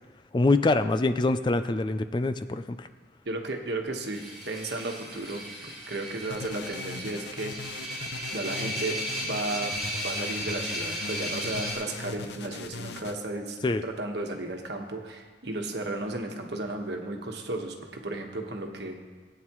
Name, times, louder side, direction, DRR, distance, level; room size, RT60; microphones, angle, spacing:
voice 1, 0.3-2.9 13.6-13.8, left 2 dB, 25° left, 10 dB, 0.4 m, -24 dB
voice 2, 3.2-7.8 8.3-9.7 10.0-19.0, right 2 dB, 75° right, 2 dB, 1.4 m, -34 dB
sound 1, 4.1-11.7, equal, ahead, 3.8 m, -35 dB
sound 2, 6.3-13.2, left 4 dB, 80° left, 0.7 m, -40 dB
19.0 x 9.3 x 3.1 m, 1.4 s
head